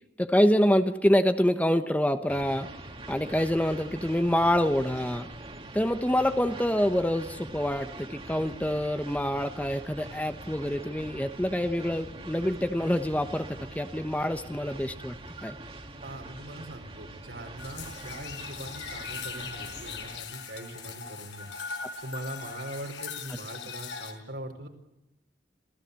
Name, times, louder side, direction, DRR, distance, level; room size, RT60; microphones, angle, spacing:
voice 1, 0.2-2.7 3.1-5.3 5.7-15.2 15.4-15.6 21.8-21.9, equal, 10° left, 9 dB, 1.0 m, -26 dB
sound 1, 2.3-20.2, right 2 dB, 30° right, 2.5 m, -44 dB
voice 2, 16.0-21.5 22.0-24.7, right 1 dB, 75° right, 4 dB, 4.7 m, -41 dB
sound 2, 17.6-24.1, left 5 dB, 80° left, 4.8 m, -40 dB
27.0 x 17.0 x 8.3 m, 0.91 s
head